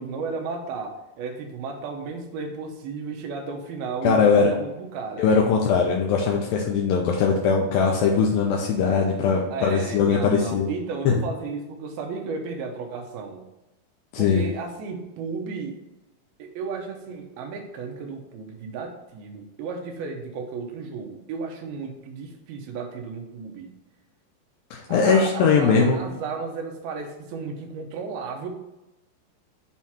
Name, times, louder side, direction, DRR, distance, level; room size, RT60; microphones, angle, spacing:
voice 1, 0.0-5.3 5.8-5.9 9.5-13.4 14.2-15.8 16.4-23.7 24.9-28.5, right 4 dB, 75° right, 3 dB, 2.6 m, -34 dB
voice 2, 4.0-4.5 5.2-10.7 11.1-11.2 14.1-14.4 24.7-26.0, left 5 dB, 80° left, -1 dB, 2.2 m, -20 dB
7.2 x 3.1 x 5.6 m, 0.98 s
omnidirectional pair, 4.7 m